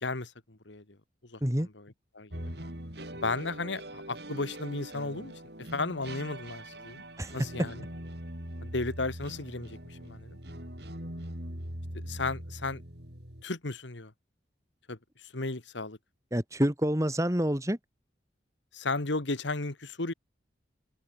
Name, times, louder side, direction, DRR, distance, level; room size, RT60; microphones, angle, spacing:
voice 1, 0.0-0.8 1.3-1.4 2.1-2.6 3.2-5.3 5.7-7.0 7.3-7.7 8.6-10.4 11.9-12.8 13.4-14.1 14.9-15.0 15.3-16.0 18.7-20.1, left 3 dB, 75° left, 1.8 m, -34 dB
sound 1, 2.3-13.4, right 1 dB, 60° right, 7.1 m, -42 dB
voice 2, 16.3-17.8, equal, 15° right, 2.3 m, -27 dB
open air
head